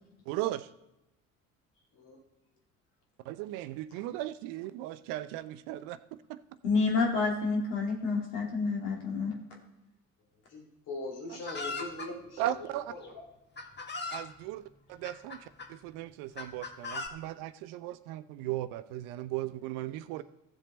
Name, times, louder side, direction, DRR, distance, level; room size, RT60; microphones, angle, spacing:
voice 1, 0.3-0.7 3.2-6.0 6.3-6.4 12.4-12.9 14.1-14.6 14.9-20.2, right 14 dB, 60° right, 14 dB, 0.7 m, -37 dB
voice 2, 6.6-9.4, left 4 dB, 70° left, 0 dB, 2.6 m, -29 dB
voice 3, 10.5-12.7 13.0-13.2 14.1-14.2, left 2 dB, 55° left, 0 dB, 3.1 m, -41 dB
Chicken rooster, 11.5-12.1 13.0-13.1 13.6-14.3 15.0-15.7 16.4-17.1, left 3 dB, 25° left, 1.5 m, -38 dB
14.0 x 7.3 x 4.0 m, 0.94 s
figure-of-eight pair, 55°, 39 cm